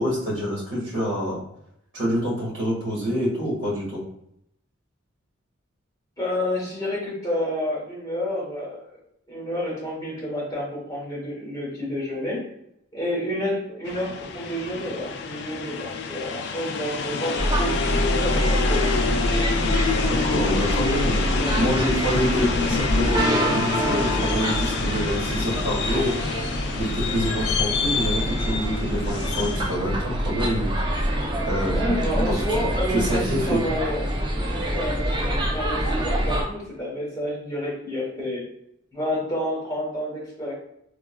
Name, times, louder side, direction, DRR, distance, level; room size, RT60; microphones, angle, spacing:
voice 1, 0.0-1.4 1.9-4.0 20.1-26.2 26.7-30.7 31.1-31.9 32.1-33.6, equal, 65° right, -4 dB, 1.5 m, -27 dB
voice 2, 6.2-8.9 9.3-12.5 12.9-19.0 21.3-21.6 31.7-34.0 34.7-38.4 38.9-40.5, left 1 dB, 20° left, -5 dB, 1.0 m, -29 dB
sound 1, 13.9-29.8, left 5 dB, 55° left, 0.3 m, -27 dB
sound 2, 17.4-36.4, equal, 25° right, 0.4 m, -26 dB
3.5 x 2.3 x 2.2 m, 0.75 s
head